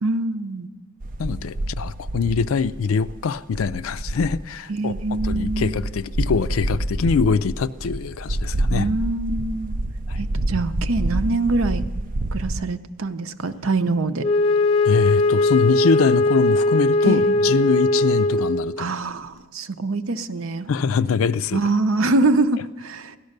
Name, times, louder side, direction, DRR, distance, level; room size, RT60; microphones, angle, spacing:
voice 1, 0.0-0.7 4.7-5.7 8.7-9.7 10.2-11.8 12.3-14.2 17.0-17.4 18.8-20.7 21.5-23.2, right 3 dB, 75° right, 10 dB, 0.7 m, -24 dB
sound 1, 1.0-4.5 4.9-12.6, right 1 dB, 40° right, 0.4 m, -27 dB
voice 2, 1.2-8.9 10.1-10.2 14.9-18.9 20.7-21.6, left 5 dB, 75° left, 15 dB, 0.4 m, -23 dB
Wind instrument woodwind instrument, 14.2-18.8, left 2 dB, 30° left, 0.6 m, -19 dB
17.0 x 12.0 x 6.6 m, 1.3 s
head